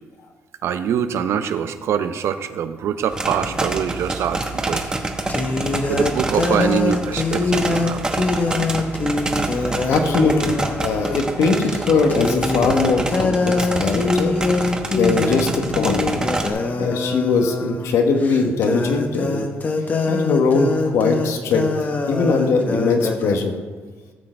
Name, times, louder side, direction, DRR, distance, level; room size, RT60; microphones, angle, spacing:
voice 1, 0.6-5.0 5.9-8.0, right 8 dB, 70° right, 10 dB, 0.7 m, -24 dB
sound 1, 3.1-16.5, right 2 dB, 15° right, 1.0 m, -27 dB
sound 2, 4.4-4.5 5.3-11.3 11.6-11.8 12.1-23.4, left 3 dB, 35° left, 1.0 m, -24 dB
voice 2, 9.9-14.4 14.9-16.0 16.8-19.5 20.1-21.7 22.1-23.5, left 4 dB, 80° left, 5 dB, 1.3 m, -20 dB
14.0 x 6.6 x 4.5 m, 1.4 s
cardioid pair, 120°, 5 cm